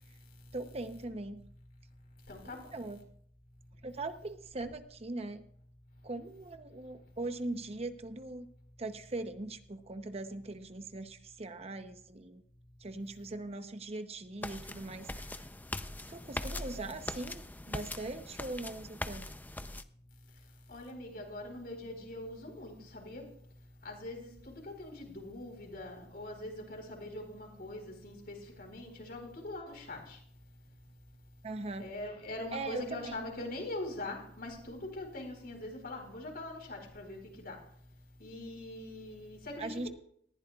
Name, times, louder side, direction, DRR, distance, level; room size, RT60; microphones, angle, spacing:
voice 1, 0.5-1.4 2.4-3.0 3.8-5.4 6.0-8.5 8.8-12.4 12.8-15.4 16.1-19.3 31.4-31.9 32.5-33.3 39.6-39.9, right 2 dB, 35° right, 9 dB, 0.8 m, -40 dB
voice 2, 2.3-2.7 20.7-23.3 23.8-30.2 31.8-37.6 38.2-39.9, left 1 dB, 60° left, 3 dB, 4.3 m, -42 dB
sound 1, 14.4-19.8, left 1 dB, 10° left, 0.6 m, -41 dB
19.5 x 14.5 x 2.4 m, 0.64 s
head